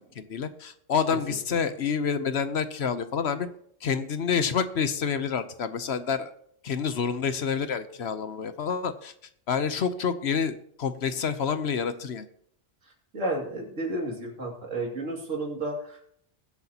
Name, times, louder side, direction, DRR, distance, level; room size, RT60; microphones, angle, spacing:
voice 1, 0.2-3.5 3.8-6.3 6.6-9.1 9.5-12.3, left 6 dB, 60° left, 11 dB, 1.0 m, -28 dB
voice 2, 13.1-16.1, right 2 dB, 85° right, 0 dB, 2.8 m, -32 dB
22.0 x 8.0 x 2.9 m, 0.67 s
omnidirectional pair, 1.3 m